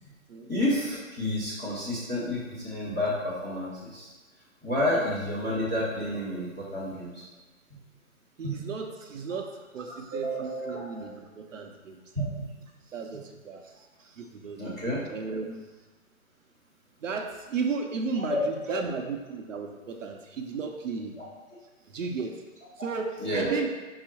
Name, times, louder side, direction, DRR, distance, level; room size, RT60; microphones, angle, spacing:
voice 1, 0.5-4.1 4.6-7.2 8.4-8.6 10.1-11.2 12.1-12.3 14.6-15.0 18.3-18.4 23.2-23.6, left 1 dB, ahead, -29 dB, 0.7 m, -30 dB
voice 2, 8.4-12.0 12.9-14.7 15.1-15.7 17.0-21.2 21.9-22.4 22.8-23.7, right 5 dB, 65° right, 3 dB, 0.7 m, -34 dB
5.4 x 2.0 x 4.5 m, 1.2 s
hypercardioid pair, 170°, 41 cm